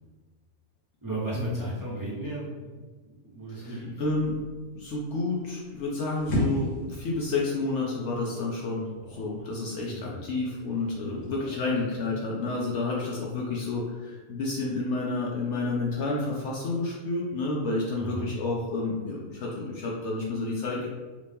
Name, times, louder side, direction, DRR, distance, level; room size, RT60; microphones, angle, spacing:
voice 1, 1.0-2.7 3.0-3.9 9.0-9.5 9.9-10.2 11.0-11.3 18.0-18.3, right 2 dB, 20° right, -8 dB, 0.6 m, -36 dB
voice 2, 3.5-4.4 4.7-20.9, left 3 dB, 65° left, -3 dB, 0.7 m, -30 dB
sound 1, 4.0-11.6, right 1 dB, 85° left, 1.4 m, -37 dB
3.1 x 2.8 x 3.4 m, 1.4 s
omnidirectional pair, 1.5 m